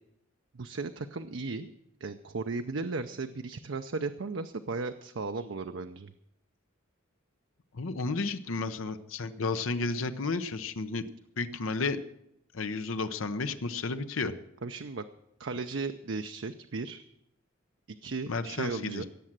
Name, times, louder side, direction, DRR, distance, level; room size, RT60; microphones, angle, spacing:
voice 1, 0.5-1.7 2.0-6.1 14.6-15.0 15.4-17.0 18.0-19.1, right 3 dB, 65° right, 8 dB, 0.6 m, -35 dB
voice 2, 7.7-11.0 11.4-12.0 12.5-14.3 18.3-19.1, left 3 dB, 80° left, 10 dB, 0.8 m, -32 dB
17.5 x 7.6 x 7.4 m, 0.81 s
head